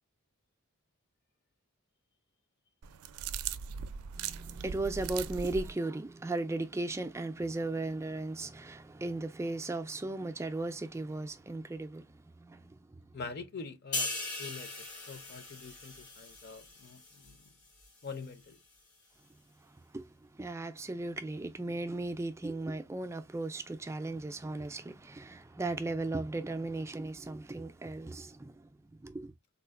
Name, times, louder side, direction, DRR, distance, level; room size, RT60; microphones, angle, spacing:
sound 1, 2.8-5.7, right 7 dB, 85° right, 0.4 m, -39 dB
voice 1, 4.1-13.0 19.9-20.1 20.4-28.7 29.0-29.3, right 2 dB, 15° right, 0.3 m, -36 dB
voice 2, 13.1-14.1 14.4-14.7 15.1-17.5 18.0-18.6, left 4 dB, 45° left, 0.6 m, -44 dB
sound 2, 13.9-17.5 17.8-18.1, left 2 dB, 85° left, 2.5 m, -39 dB
3.7 x 2.5 x 2.4 m
head